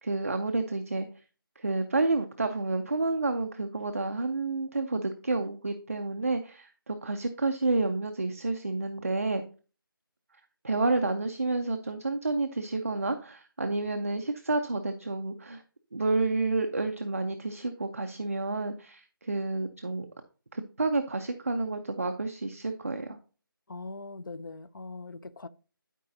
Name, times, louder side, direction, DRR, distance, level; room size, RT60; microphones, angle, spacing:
voice 1, 0.0-1.1 1.6-9.4 10.6-15.6 15.9-20.1 20.5-23.2, right 3 dB, 40° right, 0.5 m, -30 dB
voice 2, 23.7-25.5, left 3 dB, 60° left, 0.6 m, -41 dB
12.0 x 4.8 x 2.7 m
figure-of-eight pair, 180°, 12 cm